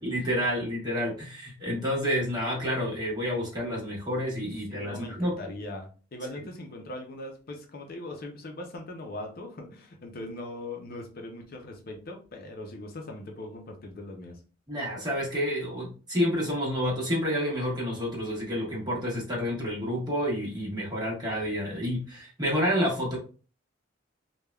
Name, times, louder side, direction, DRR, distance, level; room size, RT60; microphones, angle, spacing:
voice 1, 0.0-5.3 14.7-23.2, equal, 20° right, -4 dB, 1.1 m, -29 dB
voice 2, 4.7-14.4, left 1 dB, 50° left, 3 dB, 0.5 m, -40 dB
3.4 x 2.2 x 2.2 m, 0.37 s
head